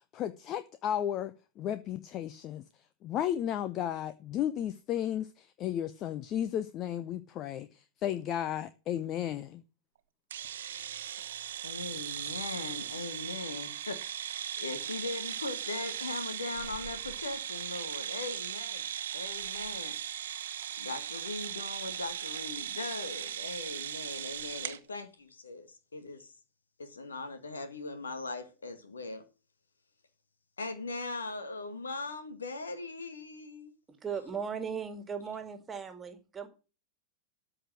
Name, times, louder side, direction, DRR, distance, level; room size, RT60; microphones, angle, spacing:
voice 1, 0.0-2.6 3.0-9.6, left 10 dB, 35° left, 0.7 m, -34 dB
sound 1, 10.3-24.8, right 10 dB, 60° right, 0.9 m, -38 dB
voice 2, 11.6-18.9 19.1-19.9 20.8-26.4 26.8-29.2 30.6-33.7, left 3 dB, 75° left, 1.8 m, -40 dB
voice 3, 33.9-36.5, right 6 dB, 20° right, 2.1 m, -37 dB
13.5 x 5.0 x 7.8 m
figure-of-eight pair, 90°, 0 cm